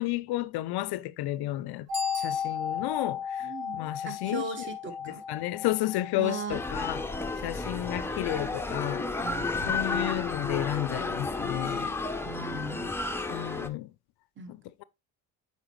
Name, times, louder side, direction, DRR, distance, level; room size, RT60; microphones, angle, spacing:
voice 1, 0.0-1.9 2.1-4.5 5.1-7.0 7.4-9.4 9.7-12.0 13.3-13.9 14.5-14.8, left 16 dB, 55° left, 0.5 m, -32 dB
Bicycle bell, 1.8-3.1, right 3 dB, 65° right, 4.1 m, -41 dB
sound 1, 1.9-11.6 11.9-12.0, left 7 dB, 85° right, 2.7 m, -37 dB
voice 2, 3.4-5.2 6.2-6.6 9.2-10.2 12.2-12.9 14.4-14.5, right 3 dB, 25° right, 1.4 m, -39 dB
sound 2, 6.5-13.7, left 3 dB, 5° left, 0.6 m, -32 dB
7.9 x 4.6 x 3.1 m
supercardioid pair, 75°, 46 cm